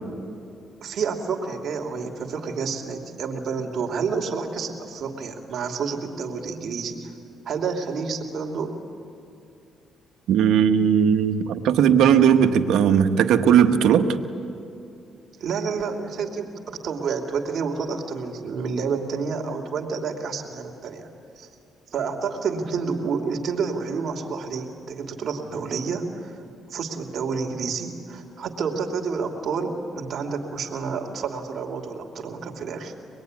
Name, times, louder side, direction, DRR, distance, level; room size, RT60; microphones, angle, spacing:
voice 1, 0.8-7.1 7.4-8.8 15.4-21.1 21.4-21.5 21.9-26.3 26.7-32.9, right 5 dB, 60° right, 3 dB, 2.6 m, -29 dB
voice 2, 10.3-14.1, right 8 dB, 80° right, 7 dB, 1.3 m, -18 dB
25.0 x 21.0 x 9.6 m, 2.6 s
cardioid pair, 90°, 0 cm